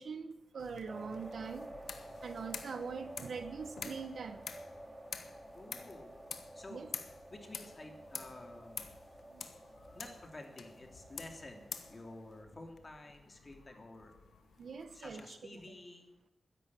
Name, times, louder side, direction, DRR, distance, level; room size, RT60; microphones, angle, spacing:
voice 1, 0.0-1.7 2.2-4.4 6.7-6.9 9.3-9.4 14.6-15.4 15.7-15.8, right 5 dB, 80° right, 9 dB, 1.3 m, -43 dB
sound 1, 0.6-15.2, left 6 dB, 90° left, 1.2 m, -49 dB
sound 2, 0.9-12.4, right 1 dB, 15° right, 2.8 m, -52 dB
voice 2, 5.5-6.1 6.5-6.9 7.3-8.9 9.9-14.1 14.9-16.1, left 2 dB, 40° left, 3 dB, 3.2 m, -51 dB
12.5 x 11.0 x 8.4 m, 0.95 s
cardioid pair, 70°, 0 cm